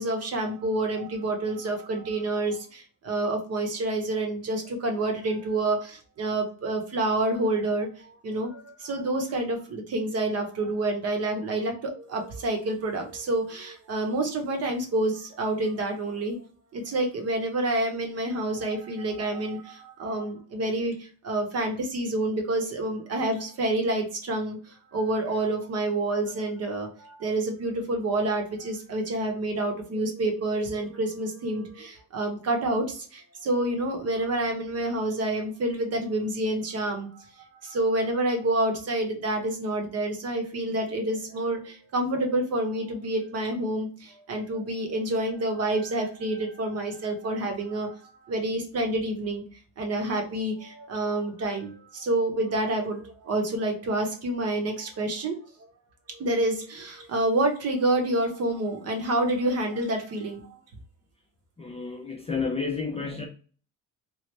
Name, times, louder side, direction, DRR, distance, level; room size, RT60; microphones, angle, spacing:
voice 1, 0.0-16.4 16.7-49.4 49.8-55.7 56.1-60.6, right 2 dB, 40° right, 0.9 m, -28 dB
voice 2, 61.6-63.3, left 5 dB, 15° left, 0.4 m, -31 dB
3.1 x 2.4 x 3.2 m
cardioid pair, 130°, 39 cm